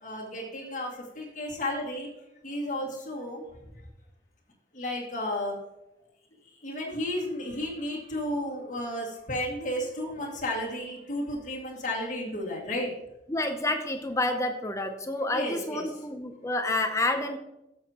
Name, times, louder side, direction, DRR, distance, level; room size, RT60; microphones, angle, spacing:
voice 1, 0.0-2.1 2.4-3.5 4.7-5.6 6.6-12.9 15.3-15.9, left 1 dB, 45° left, -3 dB, 2.2 m, -33 dB
voice 2, 13.3-17.4, left 2 dB, 15° left, 7 dB, 0.6 m, -29 dB
13.0 x 7.3 x 2.9 m, 0.92 s
head